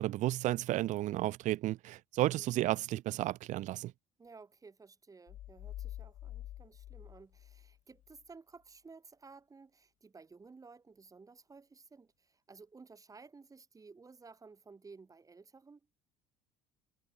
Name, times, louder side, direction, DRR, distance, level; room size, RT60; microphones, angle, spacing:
voice 1, 0.0-3.9, right 15 dB, 55° right, 0.6 m, -32 dB
voice 2, 4.2-15.8, right 4 dB, 25° right, 7.0 m, -55 dB
sound 1, 5.3-8.2, left 13 dB, 60° left, 3.9 m, -47 dB
supercardioid pair, 90°, 15 cm